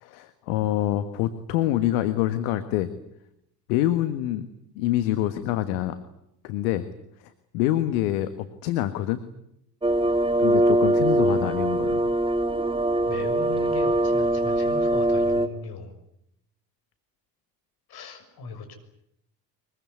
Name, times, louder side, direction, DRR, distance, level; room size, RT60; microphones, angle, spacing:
voice 1, 0.0-2.9 3.7-4.5 4.7-6.0 6.4-6.9 7.5-9.2 10.4-12.1, left 13 dB, 65° left, 11 dB, 1.6 m, -26 dB
sound 1, 9.8-15.5, right 1 dB, 10° right, 1.7 m, -22 dB
voice 2, 13.1-15.9 17.9-18.7, left 5 dB, 50° left, 6 dB, 6.5 m, -37 dB
23.5 x 22.0 x 9.7 m, 0.79 s
figure-of-eight pair, 55°, 47 cm